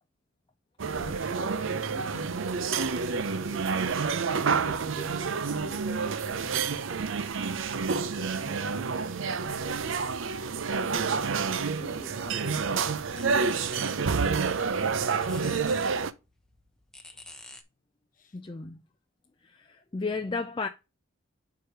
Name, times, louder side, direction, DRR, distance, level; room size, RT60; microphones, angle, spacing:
sound 1, 0.8-16.1, right 5 dB, 70° right, 0.6 m, -29 dB
voice 1, 0.9-3.8 4.5-7.0 7.7-9.5 10.8-14.1 17.1-17.2 18.2-18.4, left 1 dB, 40° left, 1.0 m, -47 dB
sound 2, 12.0-17.6, left 2 dB, 5° left, 0.8 m, -51 dB
voice 2, 18.3-18.8 19.4-20.7, left 4 dB, 25° left, 0.4 m, -33 dB
4.8 x 4.8 x 6.1 m
head